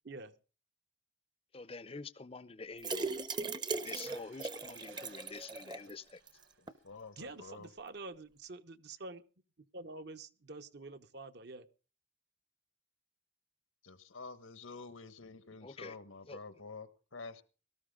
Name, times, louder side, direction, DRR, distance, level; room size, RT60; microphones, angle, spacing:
voice 1, 1.5-3.1 3.7-6.2 15.6-16.0 16.3-16.4, left 4 dB, 30° left, 16 dB, 0.6 m, -47 dB
sound 1, 2.8-5.9 6.3-6.4 6.7-6.8, right 4 dB, 20° right, 0.7 m, -38 dB
sound 2, 4.0-7.3 8.7-8.8, right 4 dB, 75° right, 3.4 m, -61 dB
voice 2, 6.6-7.7 13.8-17.4, left 4 dB, 85° left, 12 dB, 1.4 m, -49 dB
voice 3, 7.2-9.2 9.7-11.7, right 3 dB, 55° right, 10 dB, 0.9 m, -47 dB
18.0 x 13.5 x 3.7 m, 0.35 s
head